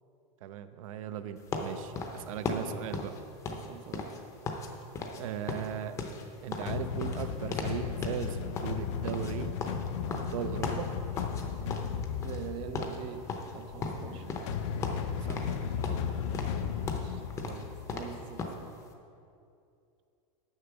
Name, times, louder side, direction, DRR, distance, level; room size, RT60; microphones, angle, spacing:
voice 1, 0.4-3.1 5.2-6.0 6.4-9.5 10.1-10.9 15.2-16.2, right 9 dB, 80° right, 11 dB, 0.6 m, -38 dB
sound 1, 1.5-4.7 5.0-5.2 5.5-8.3 8.6-11.4 11.7-12.5 12.7-13.0 13.3-14.6 14.8-15.6 15.8-18.6, left 4 dB, 20° left, 0.6 m, -37 dB
voice 2, 3.4-4.1 12.2-13.2 13.5-14.2 16.7-18.6, right 8 dB, 30° right, 7 dB, 0.4 m, -43 dB
sound 2, 6.7-18.6, left 7 dB, 60° left, 0.6 m, -36 dB
7.7 x 6.6 x 6.0 m, 2.6 s
supercardioid pair, 165°, 17 cm